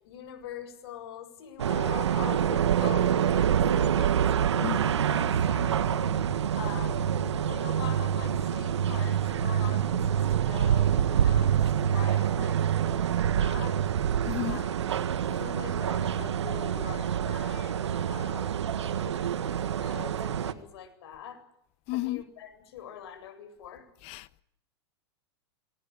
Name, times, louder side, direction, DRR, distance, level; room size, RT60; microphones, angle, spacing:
voice 1, 0.0-6.1 6.5-7.2 7.4-13.8 14.5-14.9 15.3-18.5 19.0-21.4 21.9-23.9, left 9 dB, 70° left, 7.7 m, -44 dB
sound 1, 1.6-20.5, right 9 dB, 90° right, 1.8 m, -26 dB
voice 2, 14.2-14.6 21.9-22.2 24.0-24.4, left 18 dB, 45° left, 1.3 m, -33 dB
27.0 x 22.5 x 8.8 m
hypercardioid pair, 120°, 14 cm